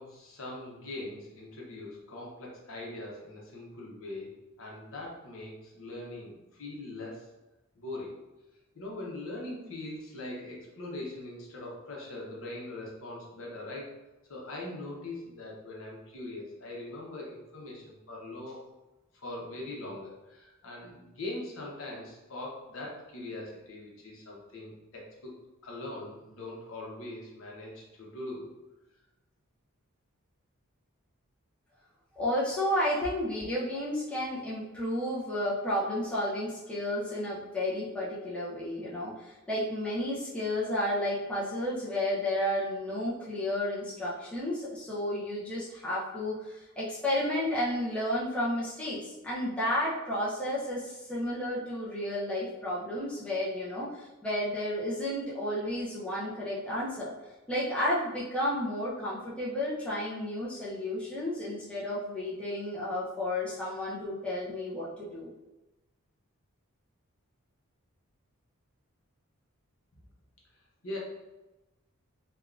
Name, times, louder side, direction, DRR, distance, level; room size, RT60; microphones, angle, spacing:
voice 1, 0.0-4.3 4.6-7.2 7.7-8.1 8.7-13.9 14.3-18.6 19.2-28.5 70.8-71.0, left 2 dB, 65° left, -3 dB, 0.8 m, -41 dB
voice 2, 32.1-57.1 57.5-65.3, left 1 dB, 5° left, -8 dB, 0.5 m, -32 dB
3.4 x 2.3 x 2.4 m, 1.0 s
head